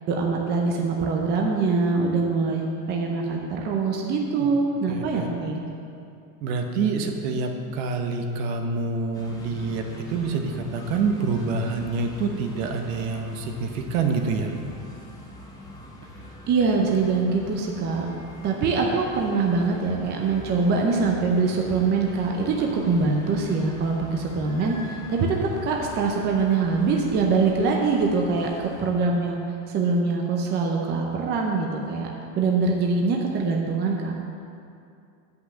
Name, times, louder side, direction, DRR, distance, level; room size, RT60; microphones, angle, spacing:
voice 1, 0.1-5.6 16.5-18.1 18.4-28.5 28.8-29.4 29.7-32.1 32.4-34.1, right 4 dB, 25° right, 0 dB, 0.6 m, -23 dB
voice 2, 4.9-5.3 6.4-14.5, right 4 dB, 55° right, 4 dB, 1.1 m, -27 dB
sound 1, 9.1-28.9, left 1 dB, 10° left, 1.0 m, -43 dB
7.9 x 5.8 x 7.5 m, 2.5 s
supercardioid pair, 155°, 46 cm